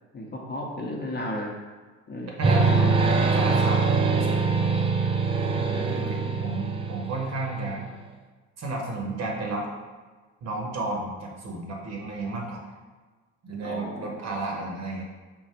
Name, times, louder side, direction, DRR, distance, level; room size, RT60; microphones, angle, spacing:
voice 1, 0.1-1.6 2.1-3.0 5.5-5.9 6.3-6.4 13.6-14.2, left 1 dB, 25° left, -2 dB, 0.8 m, -35 dB
sound 1, 2.4-7.9, right 4 dB, 15° right, 0.3 m, -24 dB
voice 2, 2.4-4.9 5.4-7.8 8.6-9.7 10.4-12.6 13.4-15.0, right 2 dB, 45° right, -1 dB, 1.0 m, -32 dB
3.7 x 2.4 x 4.4 m, 1.4 s
figure-of-eight pair, 55°, 39 cm